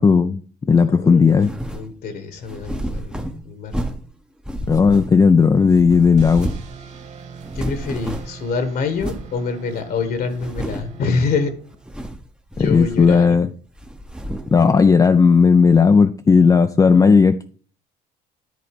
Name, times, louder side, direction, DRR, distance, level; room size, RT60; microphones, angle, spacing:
voice 1, 0.0-1.5 4.7-6.5 12.6-13.5 14.5-17.5, left 5 dB, 20° left, 8 dB, 0.4 m, -14 dB
voice 2, 0.7-3.8 7.5-11.5 12.6-13.4, left 4 dB, 60° left, 10 dB, 1.5 m, -26 dB
sound 1, 1.4-1.9 2.5-4.1 4.4-5.4 5.7-6.8 7.0-7.1 7.4-8.4 9.0-9.3 9.8-9.9 10.3-11.0 11.7-12.3 12.5-13.4 13.8-14.6, right 1 dB, 5° right, 0.8 m, -30 dB
sound 2, 6.2-12.0, right 6 dB, 40° right, 1.7 m, -41 dB
10.5 x 4.0 x 5.2 m, 0.43 s
cardioid pair, 110°, 17 cm